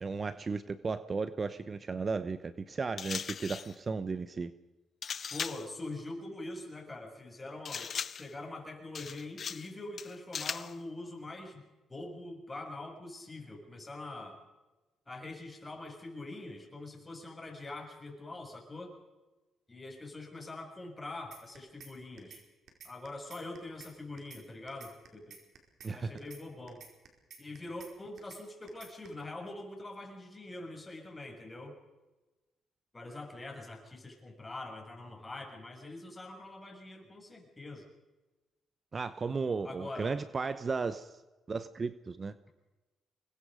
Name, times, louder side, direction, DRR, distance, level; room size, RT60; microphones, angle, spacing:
voice 1, 0.0-4.5 25.8-26.1 38.9-41.2 41.5-42.3, right 4 dB, 35° right, 13 dB, 0.9 m, -35 dB
sound 1, 3.0-3.8 5.0-5.7 7.7-8.3 8.9-9.7 10.0-10.8, left 7 dB, 50° left, 0.7 m, -38 dB
voice 2, 5.3-7.9 8.2-11.6 11.9-14.4 15.1-18.9 19.7-22.4 22.8-25.4 25.9-26.8 27.4-31.8 32.9-37.8 39.6-40.1, left 2 dB, 20° left, 2 dB, 6.6 m, -44 dB
sound 2, 21.3-21.9 22.2-22.4 22.7-23.9 24.2-24.4 24.7-25.9 26.2-26.4 26.7-27.9 28.2-28.4 28.7-29.1, right 6 dB, 65° right, 4.9 m, -51 dB
25.5 x 21.5 x 5.2 m, 1.1 s
cardioid pair, 90°, 0 cm